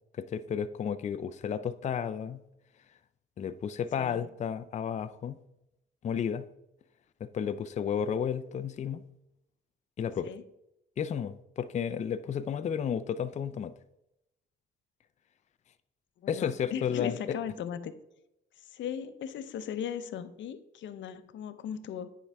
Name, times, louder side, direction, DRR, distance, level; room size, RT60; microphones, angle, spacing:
voice 1, 0.2-2.4 3.4-5.4 6.0-6.5 7.2-9.0 10.0-10.3 11.0-13.7 16.3-17.4, left 7 dB, 35° left, 12 dB, 0.4 m, -32 dB
voice 2, 4.0-4.3 10.2-10.4 16.2-17.9 18.6-22.1, left 9 dB, 70° left, 11 dB, 0.7 m, -38 dB
9.8 x 4.7 x 3.4 m, 0.86 s
cardioid pair, 90°, 20 cm